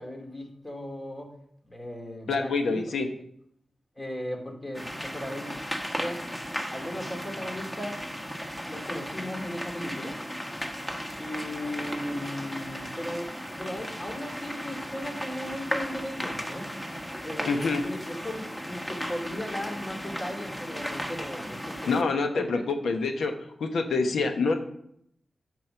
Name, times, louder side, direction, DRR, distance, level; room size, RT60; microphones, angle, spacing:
voice 1, 0.0-1.3 1.7-2.9 4.0-5.6 6.0-6.2 6.7-8.0 8.5-10.2 11.2-13.3 13.6-16.7 17.2-22.6, left 1 dB, 30° left, 2 dB, 2.3 m, -37 dB
voice 2, 2.3-3.1 17.5-17.8 21.9-23.3 23.6-24.6, left 4 dB, 90° left, 6 dB, 0.9 m, -26 dB
sound 1, 4.7-22.0, equal, 10° left, 1.4 m, -36 dB
7.5 x 5.5 x 6.7 m, 0.72 s
cardioid pair, 50°, 0 cm